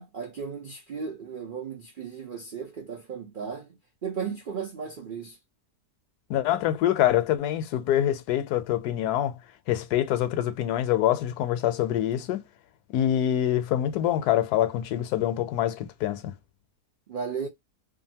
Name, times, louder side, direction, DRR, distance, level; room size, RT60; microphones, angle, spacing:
voice 1, 0.0-3.8 4.0-5.4 17.1-17.5, right 6 dB, 70° right, 0.4 m, -35 dB
voice 2, 6.3-9.3 9.7-12.4 12.9-16.3, left 12 dB, 80° left, 1.1 m, -25 dB
2.8 x 2.5 x 2.7 m
omnidirectional pair, 1.7 m